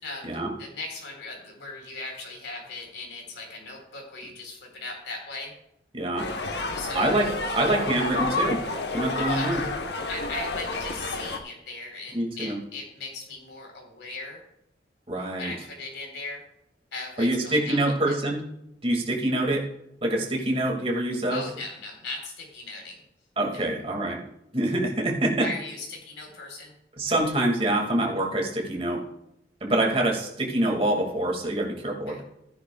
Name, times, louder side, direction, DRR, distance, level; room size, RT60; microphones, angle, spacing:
voice 1, 0.0-0.3 0.6-5.5 6.7-7.4 9.2-9.5 10.1-14.4 15.4-16.4 16.9-18.1 21.3-23.0 23.5-23.6 25.4-26.7 32.0-32.2, left 3 dB, 85° left, 1 dB, 3.8 m, -38 dB
voice 2, 5.9-6.3 6.9-7.3 7.5-8.6 8.9-9.6 12.1-12.6 15.1-15.5 17.2-18.4 18.8-19.7 20.0-21.4 23.4-24.2 24.5-25.5 27.0-29.0 29.6-32.2, right 1 dB, 30° right, 0 dB, 2.0 m, -25 dB
sound 1, 6.2-11.4, left 3 dB, 65° left, 1.0 m, -30 dB
14.5 x 10.0 x 2.3 m, 0.80 s
head